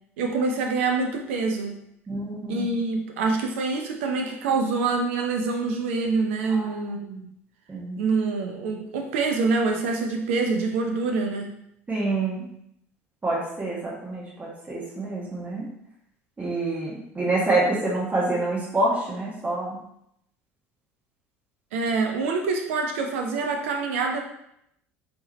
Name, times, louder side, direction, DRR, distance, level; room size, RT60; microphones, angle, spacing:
voice 1, 0.2-1.8 2.5-7.3 8.0-11.5 21.7-24.2, right 4 dB, 75° right, 3 dB, 0.7 m, -26 dB
voice 2, 2.1-2.7 6.5-6.8 7.7-8.1 11.9-12.6 13.2-15.7 16.4-19.8, right 2 dB, 20° right, -6 dB, 1.6 m, -27 dB
4.5 x 3.1 x 3.1 m, 0.76 s
hypercardioid pair, 65°, 7 cm